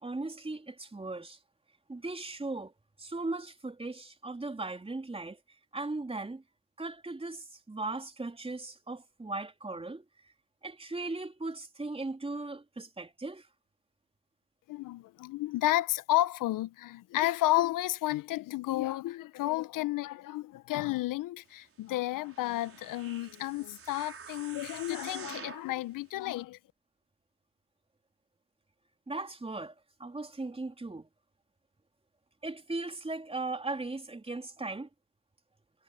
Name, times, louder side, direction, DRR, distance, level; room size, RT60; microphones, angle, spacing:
voice 1, 0.0-1.4 1.9-2.7 3.0-5.4 5.7-6.4 6.8-10.0 10.6-13.5 29.1-29.7 30.0-31.1 32.4-34.9, right 2 dB, 15° right, 3.6 m, -38 dB
voice 2, 14.7-26.6, left 16 dB, 65° left, 1.5 m, -31 dB
sound 1, 22.2-25.7 26.3-26.4, right 6 dB, 40° right, 4.6 m, -47 dB
hypercardioid pair, 60°, 35 cm